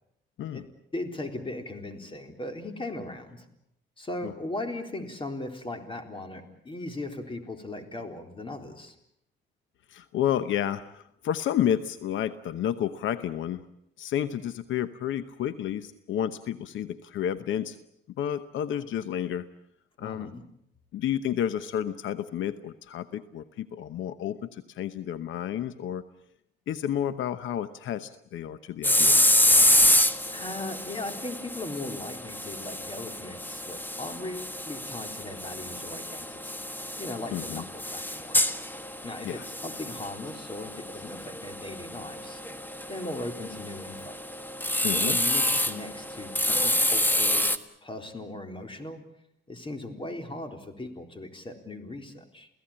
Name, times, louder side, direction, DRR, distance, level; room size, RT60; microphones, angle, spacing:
voice 1, 0.9-3.5 4.0-9.0 20.0-20.4 30.3-36.6 37.0-38.4 39.0-42.4 42.9-44.2 44.9-47.5 47.8-49.0 49.5-52.5, left 2 dB, 25° left, 6 dB, 4.0 m, -38 dB
voice 2, 9.9-13.6 14.0-17.8 18.2-19.4 20.0-20.3 20.9-26.0 26.7-29.2 37.3-37.6 39.2-39.4 44.8-45.2, left 10 dB, 75° left, 13 dB, 1.0 m, -31 dB
sound 1, 28.8-47.6, left 1 dB, 10° left, 1.5 m, -27 dB
29.0 x 17.0 x 8.8 m, 0.76 s
cardioid pair, 90°, 20 cm